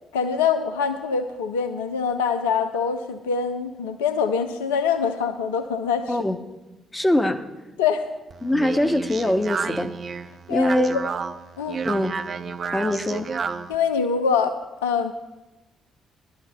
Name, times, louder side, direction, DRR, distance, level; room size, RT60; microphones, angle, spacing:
voice 1, 0.1-6.1 7.8-8.1 10.5-11.0 11.6-11.8 13.7-15.1, left 6 dB, 70° left, 9 dB, 0.4 m, -24 dB
voice 2, 6.9-7.5 8.4-9.9 10.5-11.0 11.8-12.1 12.7-13.3, left 1 dB, 15° left, 8 dB, 0.9 m, -22 dB
Speech, 8.3-13.7, right 5 dB, 45° right, 0.5 m, -31 dB
20.5 x 11.5 x 2.2 m, 1.0 s
figure-of-eight pair, 45°, 0 cm